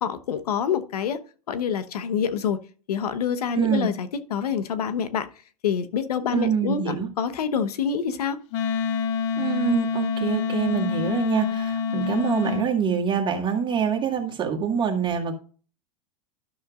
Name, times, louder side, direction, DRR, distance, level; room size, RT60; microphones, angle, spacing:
voice 1, 0.0-1.2 1.5-5.3 5.6-8.4, left 7 dB, 85° left, 1.0 m, -27 dB
voice 2, 3.5-3.9 6.3-7.1 9.4-15.3, right 7 dB, 25° right, 1.8 m, -25 dB
Wind instrument woodwind instrument, 8.5-12.7, left 6 dB, 55° left, 0.8 m, -27 dB
12.0 x 6.5 x 2.4 m
hypercardioid pair, 120°, 19 cm